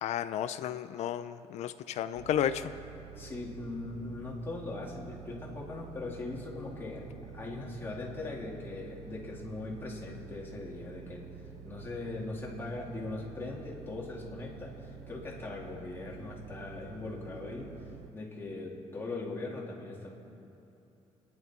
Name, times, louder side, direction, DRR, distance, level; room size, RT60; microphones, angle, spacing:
voice 1, 0.0-2.7, left 10 dB, 75° left, 11 dB, 0.6 m, -32 dB
sound 1, 2.1-18.1, right 7 dB, 85° right, 0.9 m, -49 dB
voice 2, 3.2-7.1 7.3-11.3 11.6-17.7 18.1-20.2, left 2 dB, 20° left, -4 dB, 3.1 m, -40 dB
28.0 x 10.5 x 4.6 m, 2.9 s
cardioid pair, 145°, 12 cm